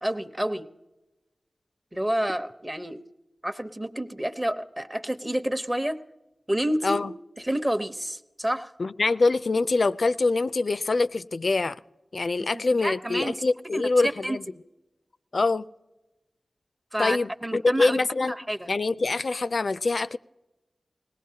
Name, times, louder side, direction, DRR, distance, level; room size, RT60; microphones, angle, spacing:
voice 1, 0.0-0.7 1.9-3.0 3.4-6.0 6.5-7.0 7.4-8.7 12.4-13.4 13.7-14.6 16.9-18.0 18.3-18.7, right 1 dB, 20° right, 0.8 m, -29 dB
voice 2, 8.8-11.8 12.1-14.4 15.3-15.6 17.0-18.3 18.7-20.2, left 3 dB, 70° left, 0.4 m, -24 dB
21.0 x 18.5 x 2.8 m
wide cardioid pair, 60°, 0 cm